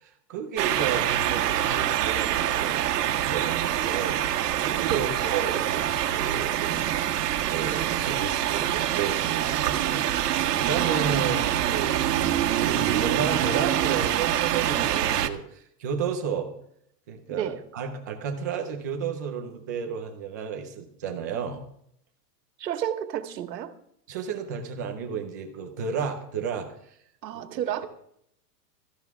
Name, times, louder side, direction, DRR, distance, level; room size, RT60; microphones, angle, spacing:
voice 1, 0.0-6.9 7.5-12.0 12.5-16.5 17.1-21.6 24.1-26.7 27.3-27.4, right 6 dB, 15° right, 0.4 m, -32 dB
sound 1, 0.6-15.3, right 11 dB, 75° right, 1.6 m, -25 dB
voice 2, 17.3-17.6 22.6-23.7 27.2-27.9, right 10 dB, 90° right, 1.8 m, -31 dB
16.5 x 14.5 x 3.5 m
supercardioid pair, 165°, 48 cm